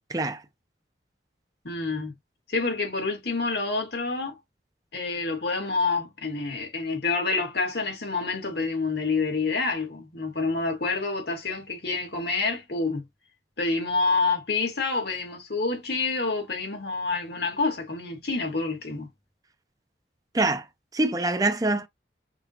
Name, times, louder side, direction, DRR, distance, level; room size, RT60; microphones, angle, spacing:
voice 1, 0.1-0.4 20.3-20.7 20.9-21.9, right 2 dB, 20° right, 0.6 m, -24 dB
voice 2, 1.6-2.1 2.5-4.4 4.9-13.1 13.6-19.1, left 3 dB, 70° left, 1.9 m, -28 dB
6.0 x 2.3 x 2.9 m
head